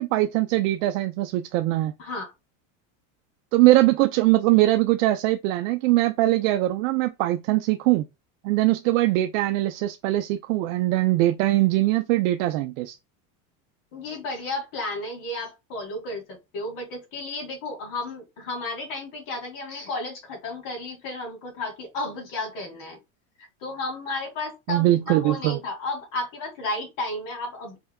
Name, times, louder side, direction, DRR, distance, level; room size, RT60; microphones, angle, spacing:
voice 1, 0.0-1.9 3.5-8.1 8.4-12.9 24.7-25.6, right 16 dB, 70° right, 0.5 m, -21 dB
voice 2, 2.0-2.3 13.9-23.0 23.6-27.8, left 2 dB, 55° left, 2.4 m, -33 dB
4.5 x 3.4 x 2.3 m
supercardioid pair, 130°, 40 cm